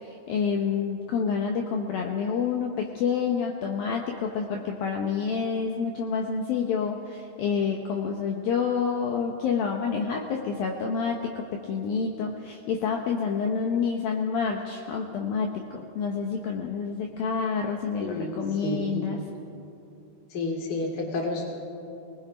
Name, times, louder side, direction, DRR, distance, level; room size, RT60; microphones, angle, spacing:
voice 1, 0.0-19.2, left 6 dB, 70° left, 2 dB, 2.4 m, -28 dB
voice 2, 18.0-19.1 20.3-21.4, left 2 dB, 30° left, 1 dB, 2.1 m, -30 dB
28.0 x 19.5 x 5.1 m, 2.7 s
omnidirectional pair, 5.2 m